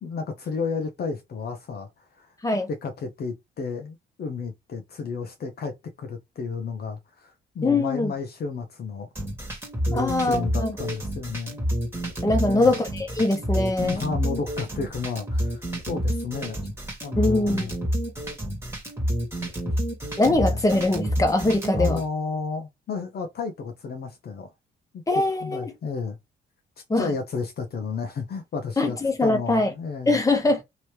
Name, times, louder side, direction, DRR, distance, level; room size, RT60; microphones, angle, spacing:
voice 1, 0.0-9.1 9.8-11.6 12.3-12.7 13.8-16.7 17.0-17.7 19.6-19.7 20.2-20.6 21.8-24.5 25.1-26.2 27.0-30.2, left 5 dB, 55° left, 0.8 m, -32 dB
voice 2, 7.6-8.1 9.9-10.8 12.2-14.0 17.2-17.7 20.2-22.0 25.1-25.7 26.9-27.1 28.8-29.7 30.1-30.6, left 2 dB, 15° left, 1.2 m, -22 dB
sound 1, 9.1-22.0, equal, 10° right, 1.6 m, -28 dB
3.0 x 2.8 x 3.2 m
cardioid pair, 90°, 20 cm